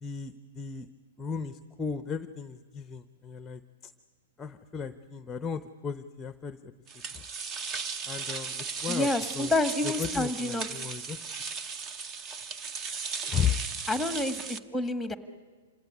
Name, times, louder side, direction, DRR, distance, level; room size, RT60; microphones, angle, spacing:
voice 1, 0.0-0.9 1.2-3.9 4.4-6.7 7.1-7.2 8.1-9.1 9.4-9.5 9.8-11.2 13.3-13.6, left 7 dB, 15° left, 11 dB, 0.7 m, -35 dB
sound 1, 6.9-14.6, right 5 dB, 30° right, 0.9 m, -36 dB
voice 2, 8.9-10.7 13.9-15.1, left 2 dB, ahead, 9 dB, 1.7 m, -29 dB
26.5 x 17.5 x 9.9 m, 1.5 s
hypercardioid pair, 130°, 0 cm